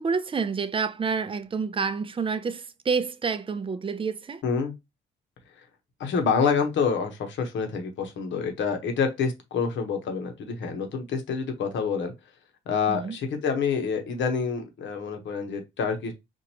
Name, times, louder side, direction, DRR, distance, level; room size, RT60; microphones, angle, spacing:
voice 1, 0.0-4.4 12.9-13.2, right 5 dB, 25° right, 0.5 m, -28 dB
voice 2, 4.4-4.7 6.0-12.1 12.7-16.1, left 5 dB, 70° left, 1.0 m, -27 dB
4.5 x 2.5 x 2.9 m
cardioid pair, 90°, 20 cm